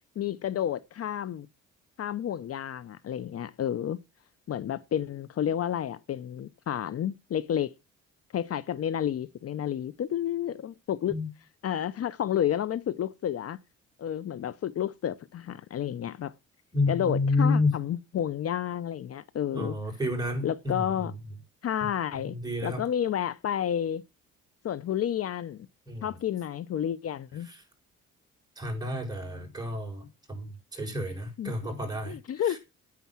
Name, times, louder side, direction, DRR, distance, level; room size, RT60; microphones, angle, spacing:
voice 1, 0.2-1.5 2.0-4.0 4.5-7.7 8.3-11.2 11.6-13.6 14.0-16.3 16.9-19.8 20.4-21.1 21.6-22.4 22.6-24.0 24.6-25.7 26.0-27.5 31.4-31.7 32.1-32.6, left 10 dB, 50° left, 0.7 m, -30 dB
voice 2, 16.7-17.7 19.5-21.1 22.2-22.8 25.9-26.2 27.5-27.6 28.6-32.6, left 2 dB, 15° right, 6.5 m, -30 dB
9.5 x 9.3 x 6.1 m
cardioid pair, 90°, 30 cm